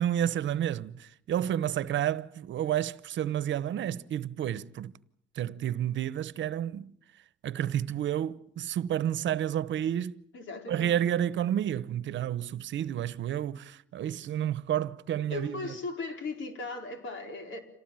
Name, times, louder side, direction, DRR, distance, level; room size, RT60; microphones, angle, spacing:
voice 1, 0.0-4.9 5.4-6.9 7.4-10.2 10.7-15.7, right 10 dB, 70° right, 1.0 m, -30 dB
voice 2, 10.3-10.9 15.3-17.6, left 3 dB, 75° left, 4.5 m, -37 dB
27.5 x 18.5 x 9.1 m
cardioid pair, 90°, 20 cm